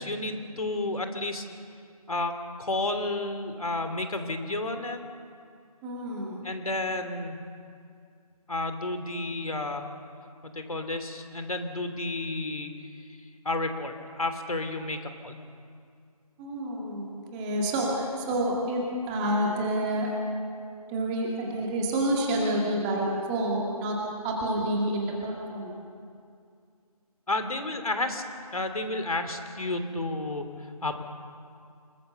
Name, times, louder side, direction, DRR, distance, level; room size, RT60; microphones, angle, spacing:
voice 1, 0.0-1.5 2.1-5.0 6.4-7.4 8.5-9.8 10.4-12.8 13.4-15.3 27.3-28.2 28.5-31.0, left 2 dB, 65° left, 7 dB, 3.0 m, -31 dB
voice 2, 5.8-6.4 16.4-20.1 20.9-25.7, right 1 dB, 10° right, -2 dB, 2.0 m, -28 dB
27.5 x 20.5 x 6.8 m, 2.3 s
figure-of-eight pair, 155°, 20 cm